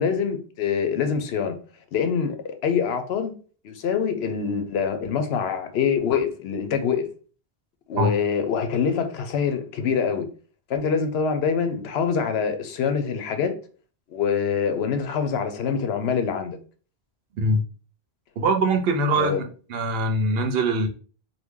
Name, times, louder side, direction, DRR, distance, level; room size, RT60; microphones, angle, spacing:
voice 1, 0.0-1.6 1.9-3.3 3.6-7.1 7.9-10.3 10.7-13.5 14.1-16.6 19.2-19.4, left 6 dB, 75° left, 0.8 m, -25 dB
voice 2, 18.4-19.4 19.7-20.9, right 2 dB, 70° right, 0.8 m, -22 dB
3.0 x 2.2 x 3.5 m
omnidirectional pair, 1.1 m